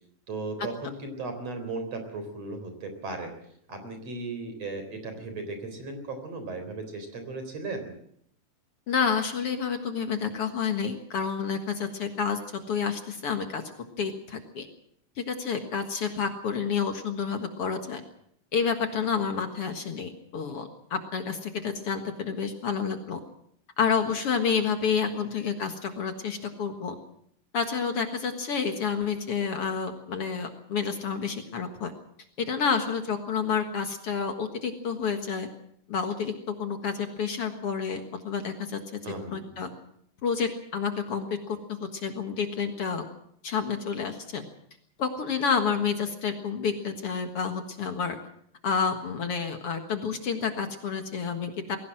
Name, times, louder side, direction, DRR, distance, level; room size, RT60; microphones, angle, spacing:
voice 1, 0.3-3.3 3.7-7.9 39.0-39.7, right 3 dB, 55° right, 7 dB, 5.0 m, -36 dB
voice 2, 8.9-12.4 12.7-13.6 14.0-14.7 15.2-18.0 18.5-23.2 23.8-26.9 27.5-31.9 32.4-35.5 35.9-36.3 36.6-38.8 39.3-39.7 40.2-43.0 43.4-44.4 45.0-48.2 48.6-51.8, left 6 dB, 55° left, 6 dB, 2.4 m, -29 dB
21.5 x 17.5 x 7.6 m, 0.70 s
omnidirectional pair, 3.4 m